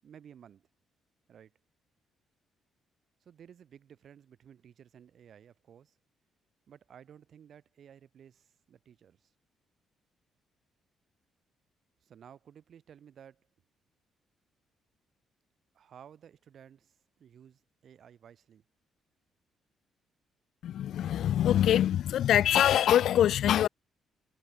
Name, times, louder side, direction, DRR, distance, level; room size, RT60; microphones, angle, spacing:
voice 1, 0.0-0.7 1.3-1.5 3.2-6.0 6.7-9.3 12.0-13.5 15.7-18.6, right 8 dB, 60° right, 7.6 m, -55 dB
voice 2, 20.6-23.7, left 11 dB, 70° left, 0.4 m, -24 dB
cardioid pair, 90°, 0 cm